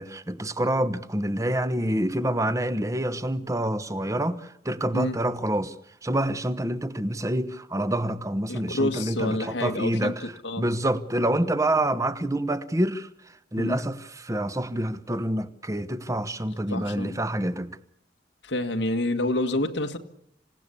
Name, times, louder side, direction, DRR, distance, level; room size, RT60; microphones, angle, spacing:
voice 1, 0.0-5.7 6.0-10.2 10.6-13.1 13.5-17.8, right 1 dB, 20° right, 1.1 m, -27 dB
voice 2, 8.5-10.6 13.6-13.8 16.7-17.2 18.4-20.0, left 1 dB, 90° left, 1.9 m, -28 dB
27.0 x 17.5 x 8.5 m
head